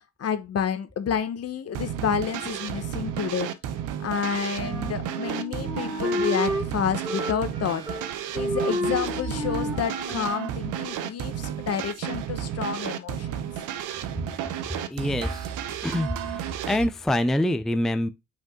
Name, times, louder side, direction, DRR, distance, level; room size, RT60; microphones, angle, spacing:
voice 1, 0.2-3.5 4.0-7.8 8.3-13.4, left 7 dB, 55° left, 1.1 m, -29 dB
sound 1, 1.7-16.9, right 10 dB, 85° right, 0.8 m, -32 dB
Wind instrument woodwind instrument, 4.6-6.7 7.0-8.1 8.3-10.5, equal, 15° right, 3.1 m, -30 dB
voice 2, 14.9-15.5 15.8-18.1, left 1 dB, ahead, 0.5 m, -26 dB
5.3 x 5.1 x 3.6 m
cardioid pair, 90°, 30 cm